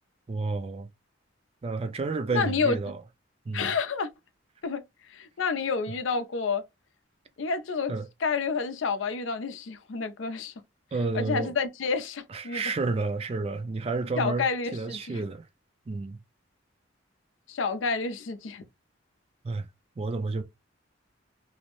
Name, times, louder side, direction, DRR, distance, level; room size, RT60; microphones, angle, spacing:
voice 1, 0.3-0.9 1.6-3.0 3.5-3.7 7.9-8.1 10.9-11.5 12.3-15.5 15.9-16.2 19.4-19.7 20.0-20.4, right 3 dB, 30° right, 0.3 m, -30 dB
voice 2, 2.3-2.8 3.5-4.1 4.6-4.8 5.1-6.6 7.4-7.9 8.2-10.5 11.1-12.6 14.2-15.2 17.5-18.6, left 5 dB, 85° left, 0.5 m, -29 dB
2.6 x 2.0 x 2.9 m
head